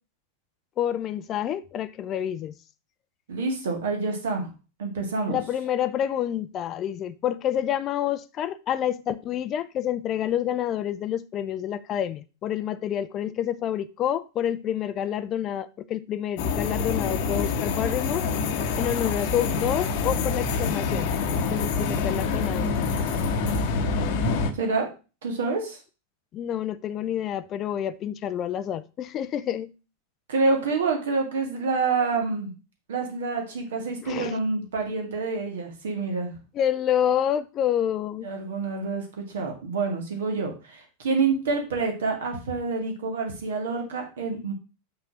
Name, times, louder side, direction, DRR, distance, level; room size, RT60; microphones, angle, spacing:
voice 1, 0.8-2.5 5.3-18.2 18.8-22.7 26.3-29.7 34.0-34.4 36.5-38.3, left 10 dB, 30° left, 0.4 m, -28 dB
voice 2, 3.3-4.5 4.8-5.4 24.5-24.9 25.2-25.8 30.3-32.5 32.9-36.4 38.2-39.1 39.3-44.5, right 4 dB, 60° right, 2.0 m, -27 dB
sound 1, 16.4-24.5, left 4 dB, 45° left, 0.9 m, -26 dB
5.8 x 4.3 x 6.0 m
figure-of-eight pair, 90°, 0 cm